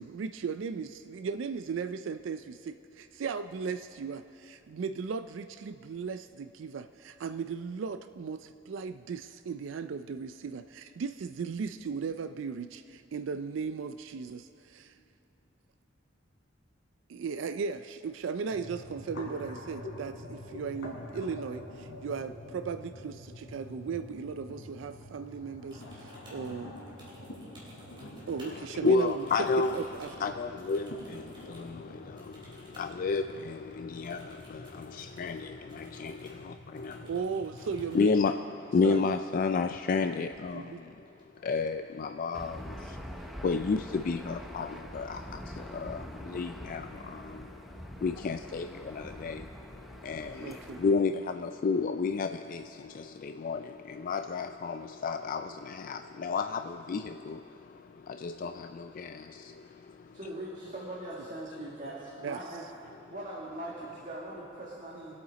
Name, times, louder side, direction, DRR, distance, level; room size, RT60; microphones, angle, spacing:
voice 1, 0.0-15.0 17.1-26.8 28.3-29.1 29.7-30.1 37.0-38.1 38.8-39.1 40.5-40.8 50.4-50.8 62.2-62.4, right 5 dB, 75° right, 10 dB, 0.4 m, -37 dB
sound 1, 18.5-37.9, left 1 dB, 80° left, 3.3 m, -47 dB
sound 2, 25.7-28.6 28.9-31.7 32.2-32.9 33.2-33.3 34.0-35.4 35.7-36.4 36.8-38.1 39.8-40.0 40.3-40.7 41.1-41.7, right 1 dB, 25° right, 3.6 m, -57 dB
voice 2, 28.0-37.2 37.6-60.2 61.6-61.9 62.2-62.3 62.8-63.1 63.5-63.9, left 4 dB, 45° left, 8 dB, 0.3 m, -32 dB
Aircraft / Engine, 42.3-50.9, equal, ahead, 0.7 m, -44 dB
voice 3, 60.1-62.6 63.1-65.2, right 1 dB, 40° right, -6 dB, 1.9 m, -41 dB
23.5 x 8.8 x 4.1 m, 2.9 s
head